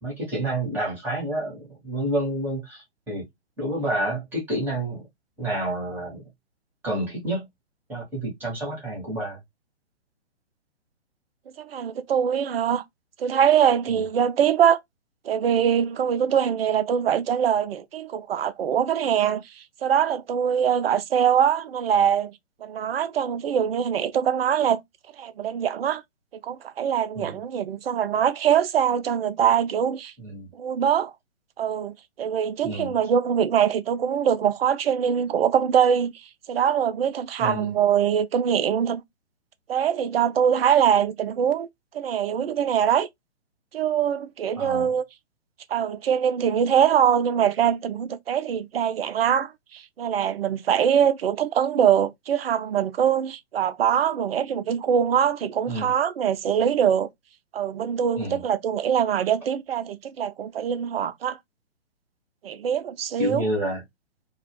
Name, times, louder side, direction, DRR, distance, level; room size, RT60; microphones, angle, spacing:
voice 1, 0.0-3.2 3.6-5.0 5.4-6.2 6.8-7.5 7.9-9.4 13.9-14.0 27.1-27.4 30.2-30.5 32.6-32.9 37.4-37.7 44.5-44.9 55.7-55.9 58.2-58.4 63.2-63.8, right 1 dB, 5° right, 0.7 m, -29 dB
voice 2, 11.6-12.8 13.2-14.8 15.2-19.4 19.8-22.3 22.6-24.8 25.2-26.0 26.4-30.1 30.5-31.1 31.6-36.1 36.5-39.0 39.7-41.7 41.9-43.1 43.7-45.0 45.7-57.1 57.5-61.4 62.4-63.5, right 8 dB, 55° right, 0.4 m, -23 dB
2.3 x 2.1 x 3.1 m
figure-of-eight pair, 130°, 35 cm